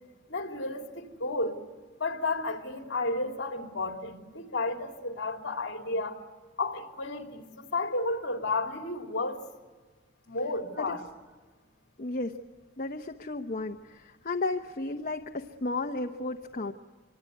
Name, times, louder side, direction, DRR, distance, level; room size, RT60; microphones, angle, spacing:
voice 1, 0.3-1.6 2.0-6.2 6.6-9.4 10.3-11.0, left 2 dB, 55° left, 3.1 m, -32 dB
voice 2, 12.0-12.4 12.8-16.7, left 2 dB, 40° left, 0.9 m, -33 dB
26.0 x 24.0 x 9.4 m
head